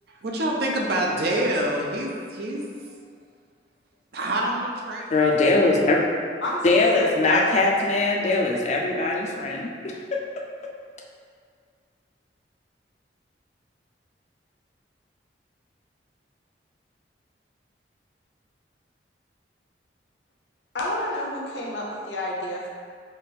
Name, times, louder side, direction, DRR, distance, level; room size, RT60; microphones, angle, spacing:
voice 1, 0.2-2.7 4.1-5.1, right 1 dB, 60° right, -1 dB, 0.6 m, -26 dB
voice 2, 5.1-6.1 6.6-10.2, left 2 dB, 40° left, -1 dB, 0.4 m, -21 dB
voice 3, 6.9-7.6 20.7-22.7, left 1 dB, 80° left, -3 dB, 0.8 m, -30 dB
4.7 x 2.5 x 3.4 m, 2.1 s
head